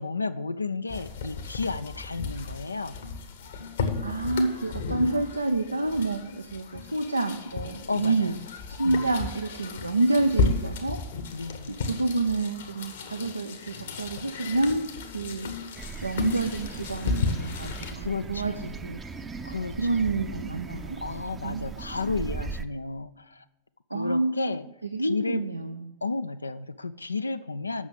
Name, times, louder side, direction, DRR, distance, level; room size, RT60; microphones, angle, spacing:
voice 1, 0.0-3.0 7.9-8.4 8.8-9.1 11.3-11.7 18.0-18.8 19.4-20.3 21.0-23.4 23.9-24.7 25.0-25.4 26.0-27.9, left 4 dB, 80° left, 12 dB, 0.3 m, -32 dB
sound 1, 0.9-17.9, left 4 dB, 65° left, 1.1 m, -33 dB
voice 2, 4.0-8.3 8.8-11.0 11.9-14.9 15.1-15.5 16.0-19.0 19.8-21.0 21.4-21.7 22.0-22.1 23.9-24.5 24.9-26.0, right 2 dB, 85° right, 6 dB, 0.5 m, -28 dB
sound 2, 15.8-22.7, right 4 dB, 20° right, 0.6 m, -39 dB
8.0 x 6.1 x 7.0 m, 0.95 s
figure-of-eight pair, 90°, 0 cm